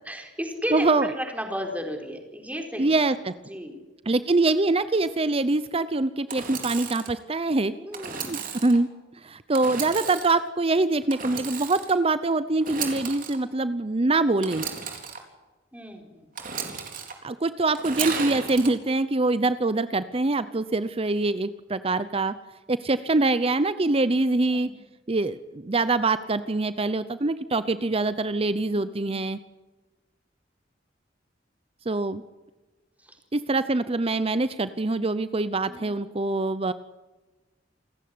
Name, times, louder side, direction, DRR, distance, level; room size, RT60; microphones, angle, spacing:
voice 1, 0.0-2.9 3.5-3.8 7.7-8.5 15.7-16.3 24.5-24.7 27.7-27.9 28.7-29.1 33.0-33.2 35.7-36.1, equal, 10° right, 3 dB, 4.4 m, -34 dB
voice 2, 0.7-1.1 2.8-3.3 4.1-7.7 8.3-8.9 9.2-14.7 17.2-22.3 22.7-24.7 25.1-29.4 31.9-32.2 33.3-36.7, right 2 dB, 30° right, 14 dB, 0.7 m, -24 dB
Engine / Sawing, 6.3-7.1 7.9-8.8 9.5-10.4 11.1-12.0 12.6-13.4 14.4-15.2 16.4-17.1 17.7-18.7, right 6 dB, 50° right, 4.0 m, -34 dB
28.5 x 15.5 x 9.6 m, 1.2 s
head